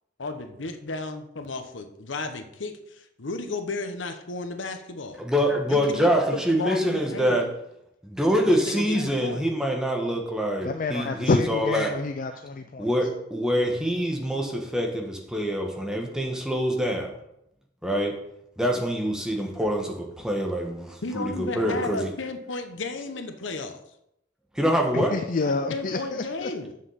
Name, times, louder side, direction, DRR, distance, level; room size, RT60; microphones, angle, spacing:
voice 1, 0.2-5.2 5.7-7.5 8.5-9.5 21.0-23.8 25.4-26.7, left 3 dB, 85° left, 7 dB, 1.0 m, -34 dB
voice 2, 5.2-7.5 8.0-11.9 12.3-12.4 12.8-17.1 17.8-18.2 18.6-22.1 24.5-25.1, equal, 5° right, 1 dB, 1.3 m, -25 dB
voice 3, 10.6-12.9 24.9-26.5, left 3 dB, 45° left, 8 dB, 0.4 m, -28 dB
7.4 x 6.4 x 5.6 m, 0.80 s
head